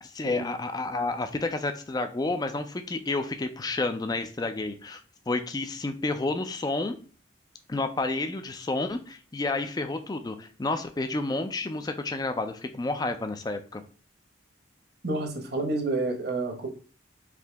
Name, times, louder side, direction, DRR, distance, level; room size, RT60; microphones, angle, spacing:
voice 1, 0.0-5.0 5.3-7.0 7.7-13.8, left 2 dB, 20° left, 8 dB, 0.4 m, -30 dB
voice 2, 15.0-16.7, right 2 dB, 50° right, 3 dB, 1.0 m, -29 dB
4.9 x 2.8 x 3.4 m, 0.39 s
head